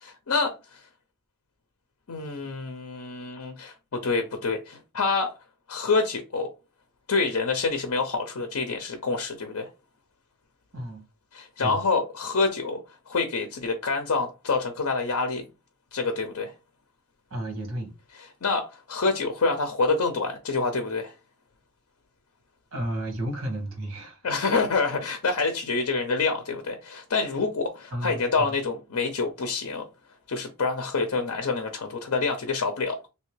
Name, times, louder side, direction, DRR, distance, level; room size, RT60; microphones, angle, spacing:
voice 1, 0.0-0.8 2.1-5.4 5.7-6.5 7.1-9.7 11.3-15.4 15.9-16.5 18.1-21.1 24.2-29.9 30.3-33.0, left 4 dB, 75° left, 0.6 m, -27 dB
voice 2, 17.3-17.9 22.7-24.2 27.9-28.5, right 1 dB, 75° right, 1.3 m, -32 dB
3.3 x 2.8 x 3.2 m
head